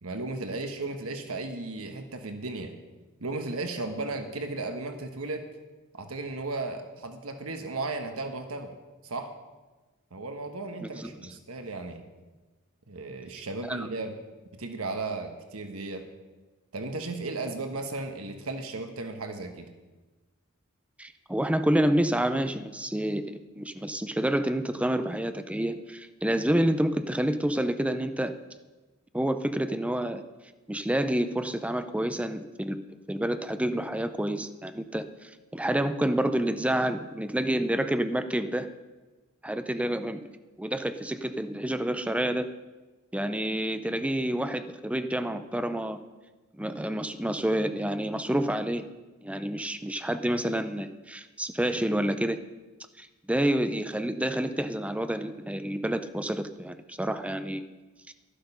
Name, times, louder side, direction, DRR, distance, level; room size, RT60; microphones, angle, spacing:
voice 1, 0.0-2.7 3.2-5.4 5.9-8.7 9.0-9.3 10.1-12.0 12.9-14.2 14.5-16.1 16.7-19.7, right 3 dB, 75° right, 6 dB, 1.2 m, -35 dB
voice 2, 10.8-11.1 13.7-13.9 21.0-28.3 29.1-30.2 30.7-32.8 33.1-38.7 39.4-40.2 40.6-42.5 43.1-46.0 46.5-48.8 49.2-52.4 53.0-57.6, right 1 dB, 5° right, 10 dB, 0.6 m, -28 dB
12.0 x 11.5 x 5.4 m, 1.2 s
head